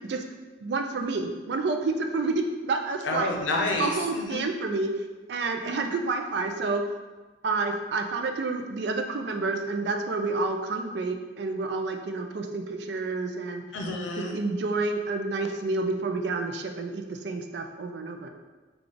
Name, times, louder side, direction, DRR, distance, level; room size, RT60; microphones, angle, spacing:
voice 1, 0.6-3.4 3.8-4.9 5.3-6.8 7.4-13.6 14.3-18.3, right 3 dB, 65° right, 4 dB, 0.4 m, -29 dB
voice 2, 3.0-4.4 13.7-14.4, left 2 dB, 90° left, 1 dB, 0.6 m, -29 dB
3.8 x 2.3 x 3.4 m, 1.3 s
head